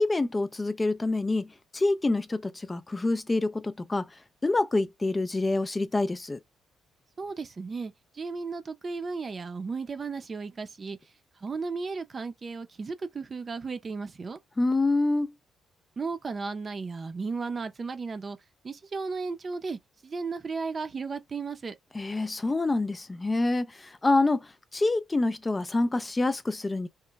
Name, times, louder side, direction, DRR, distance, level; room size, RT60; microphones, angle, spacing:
voice 1, 0.0-4.1 4.4-6.4 14.6-15.3 21.9-26.9, left 2 dB, 20° left, 0.3 m, -26 dB
voice 2, 7.2-11.0 11.4-14.4 16.0-18.4 18.6-21.8, right 4 dB, 35° right, 0.6 m, -35 dB
3.0 x 2.1 x 3.4 m
cardioid pair, 90°, 0 cm